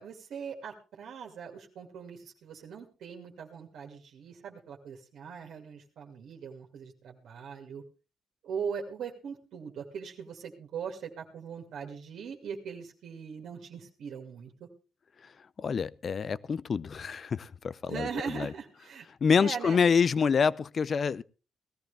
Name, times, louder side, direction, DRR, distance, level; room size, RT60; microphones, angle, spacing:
voice 1, 0.0-7.8 8.4-14.7 17.9-19.1 19.4-19.8, right 6 dB, 70° right, 2.3 m, -40 dB
voice 2, 15.6-18.5 19.2-21.2, left 6 dB, 45° left, 0.6 m, -27 dB
18.0 x 13.5 x 3.4 m
cardioid pair, 90°, 0 cm